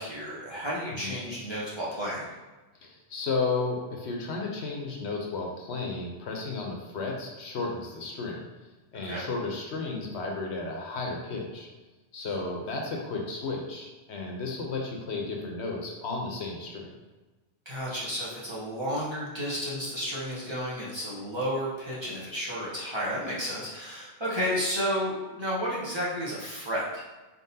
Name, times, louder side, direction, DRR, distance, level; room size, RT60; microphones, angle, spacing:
voice 1, 0.0-2.3 9.0-9.3 17.7-27.0, equal, 25° right, -8 dB, 0.9 m, -32 dB
voice 2, 2.8-8.5 8.9-11.7 12.1-16.9, left 3 dB, 70° left, 0 dB, 0.9 m, -33 dB
4.0 x 3.7 x 2.7 m, 1.2 s
omnidirectional pair, 1.2 m